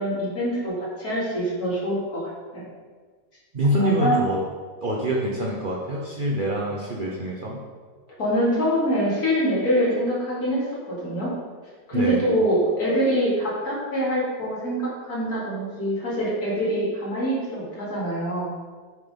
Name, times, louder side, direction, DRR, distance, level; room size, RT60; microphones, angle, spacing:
voice 1, 0.0-2.6 3.8-4.2 8.2-11.3 11.9-18.5, equal, 55° left, -7 dB, 2.7 m, -24 dB
voice 2, 3.5-4.4 4.8-7.6 11.9-12.3, equal, 70° right, -3 dB, 0.4 m, -25 dB
7.5 x 3.8 x 5.1 m, 1.5 s
omnidirectional pair, 1.9 m